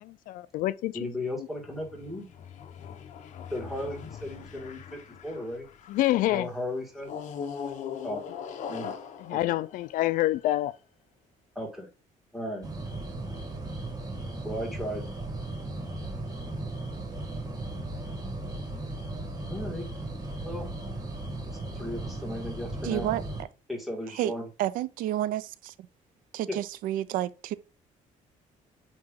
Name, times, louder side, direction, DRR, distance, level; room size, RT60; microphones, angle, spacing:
voice 1, 0.0-1.5 5.9-6.5 8.8-10.7, left 15 dB, 80° left, 0.4 m, -28 dB
voice 2, 0.9-2.3 3.5-5.7 6.3-7.2 8.0-8.2 8.7-8.9 9.3-9.4 11.6-11.9 12.3-12.7 14.4-15.0 19.5-19.9 20.4-20.7 21.5-23.1 23.7-24.5 26.5-26.6, left 1 dB, ahead, 1.9 m, -35 dB
sound 1, 1.6-6.2 7.0-10.6, left 7 dB, 60° left, 1.0 m, -41 dB
sound 2, 12.6-23.4, right 2 dB, 25° right, 1.7 m, -36 dB
voice 3, 22.8-23.2 24.1-24.3 24.6-25.7 26.3-27.5, right 13 dB, 85° right, 0.4 m, -30 dB
8.7 x 3.0 x 3.7 m
cardioid pair, 150°, 14 cm